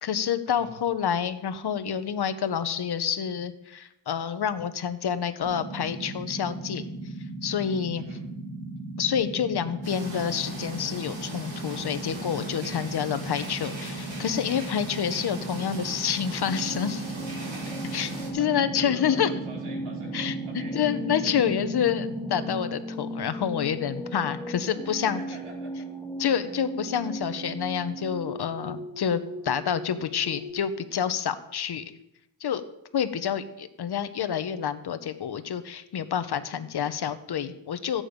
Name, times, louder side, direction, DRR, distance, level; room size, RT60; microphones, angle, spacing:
voice 1, 0.0-6.8 7.4-8.1 9.0-17.0 17.9-19.3 20.1-20.3 20.7-25.2 26.2-31.8 32.4-32.6 32.9-38.0, left 8 dB, 50° left, 11 dB, 0.9 m, -28 dB
sound 1, 5.4-22.5, right 2 dB, 30° right, 4.8 m, -37 dB
voice 2, 8.0-8.3 18.4-20.8 24.8-25.9 26.4-26.5, right 2 dB, 80° right, -3 dB, 5.3 m, -45 dB
sound 2, 9.8-18.3, right 2 dB, 60° right, 4.0 m, -40 dB
sound 3, 16.5-30.5, right 1 dB, 5° left, 1.1 m, -37 dB
15.0 x 8.7 x 5.2 m, 0.83 s
wide cardioid pair, 160°, 50 cm